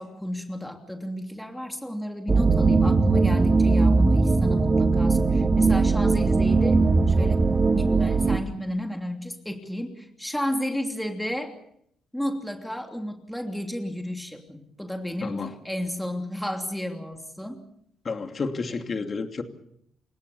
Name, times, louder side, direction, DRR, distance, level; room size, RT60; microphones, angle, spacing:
voice 1, 0.0-6.8 7.1-7.4 7.7-11.5 12.1-17.7 18.7-19.1, equal, 5° left, 4 dB, 3.0 m, -32 dB
sound 1, 2.3-8.4, right 3 dB, 25° right, 1.7 m, -20 dB
voice 2, 18.0-19.4, left 4 dB, 40° left, 6 dB, 2.6 m, -30 dB
29.5 x 17.0 x 7.0 m, 0.71 s
cardioid pair, 90°, 0 cm